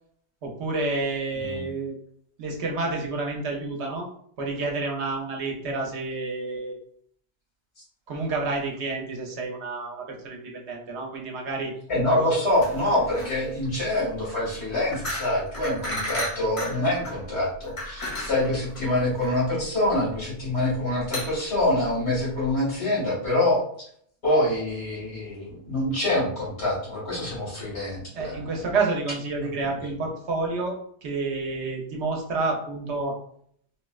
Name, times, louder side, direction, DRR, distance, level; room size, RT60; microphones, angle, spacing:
voice 1, 0.4-1.9 2.4-4.1 4.4-6.8 8.1-11.7 12.1-12.3 28.1-33.1, right 3 dB, 90° right, 0 dB, 1.0 m, -29 dB
voice 2, 1.3-1.7 11.9-23.6 24.2-28.5, left 1 dB, 80° left, -6 dB, 1.9 m, -25 dB
sound 1, 12.5-22.5, left 1 dB, 35° left, 0.8 m, -35 dB
3.6 x 2.1 x 2.3 m, 0.64 s
omnidirectional pair, 1.1 m